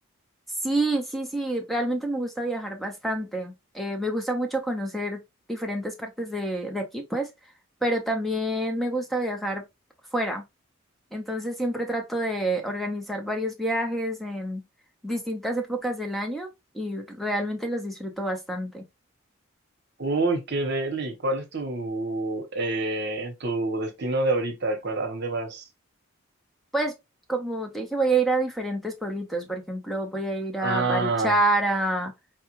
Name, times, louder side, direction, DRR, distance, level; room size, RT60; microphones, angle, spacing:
voice 1, 0.6-5.2 5.5-7.3 7.8-9.6 10.1-10.4 11.1-14.6 15.0-16.5 16.7-18.8 26.7-26.9 27.3-32.1, right 1 dB, ahead, 0.8 m, -28 dB
voice 2, 20.0-25.6 30.6-31.4, right 2 dB, 55° right, 1.0 m, -27 dB
4.6 x 2.4 x 3.0 m
head